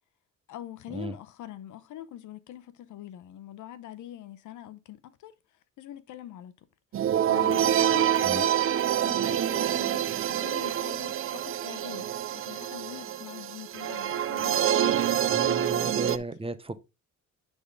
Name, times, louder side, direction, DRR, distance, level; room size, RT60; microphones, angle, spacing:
voice 1, 0.5-5.3 5.8-6.7 7.0-8.6 9.0-15.9, left 12 dB, 80° left, 0.8 m, -43 dB
sound 1, 6.9-16.2, right 10 dB, 45° right, 0.5 m, -26 dB
voice 2, 15.3-16.7, right 2 dB, 20° right, 0.8 m, -35 dB
9.9 x 3.7 x 3.8 m
cardioid pair, 90°, 30 cm